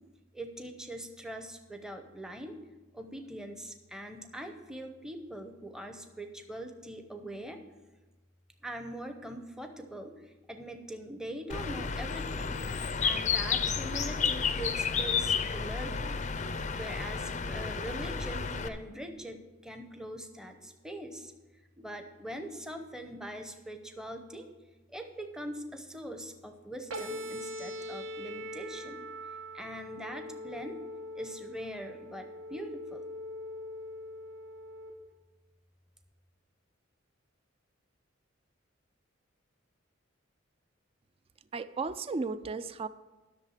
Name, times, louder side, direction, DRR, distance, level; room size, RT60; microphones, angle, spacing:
voice 1, 0.3-2.6 2.9-7.6 8.6-10.1 10.5-12.6 13.0-16.2 16.8-21.3 21.8-24.5 24.9-29.0 29.5-30.8 31.2-33.1, right 1 dB, 5° right, 6 dB, 0.7 m, -42 dB
Bird, 11.5-18.7, left 6 dB, 35° left, 0.5 m, -31 dB
sound 1, 26.9-34.9, equal, 70° right, 1.5 m, -42 dB
voice 2, 41.5-42.9, right 4 dB, 30° right, 14 dB, 0.4 m, -34 dB
11.5 x 6.6 x 6.5 m, 1.2 s
head